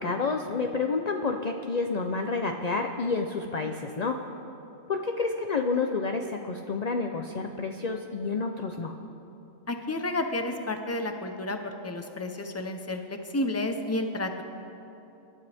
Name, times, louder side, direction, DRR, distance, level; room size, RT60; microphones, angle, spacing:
voice 1, 0.0-4.2 4.9-8.9, left 4 dB, 40° left, 4 dB, 0.7 m, -29 dB
voice 2, 9.7-14.4, left 2 dB, 15° left, 5 dB, 0.8 m, -31 dB
26.5 x 12.5 x 3.5 m, 2.9 s
omnidirectional pair, 1.2 m